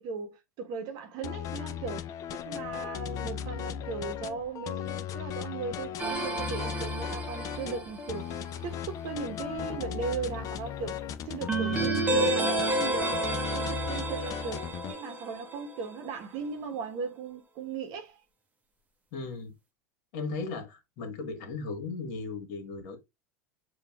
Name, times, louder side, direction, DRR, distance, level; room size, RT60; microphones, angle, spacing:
voice 1, 0.0-8.3 8.6-14.6 14.9-18.2, right 5 dB, 50° right, 0.9 m, -37 dB
sound 1, 1.2-14.9, left 9 dB, 40° left, 0.5 m, -36 dB
sound 2, 6.0-8.3 11.5-15.9, right 2 dB, 15° right, 0.8 m, -31 dB
voice 2, 11.7-12.1 19.1-19.5 20.1-23.0, left 4 dB, 55° left, 1.4 m, -37 dB
6.7 x 2.4 x 2.2 m
hypercardioid pair, 85°, 9 cm